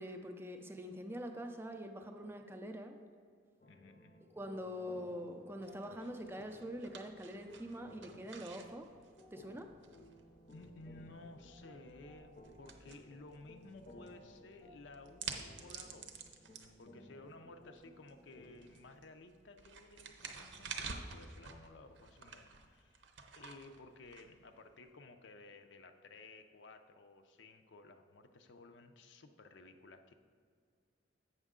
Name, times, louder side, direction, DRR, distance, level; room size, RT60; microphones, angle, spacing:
voice 1, 0.0-3.0 4.3-8.9 9.3-9.7, equal, 10° right, 5 dB, 0.4 m, -44 dB
voice 2, 3.6-4.3 10.5-16.1 16.8-23.1 23.3-30.1, left 2 dB, 75° left, 7 dB, 0.5 m, -56 dB
sound 1, 3.6-18.8, left 1 dB, 35° left, 0.6 m, -59 dB
sound 2, 5.6-24.9, right 5 dB, 80° right, 0.7 m, -51 dB
8.0 x 6.2 x 3.7 m, 2.2 s
head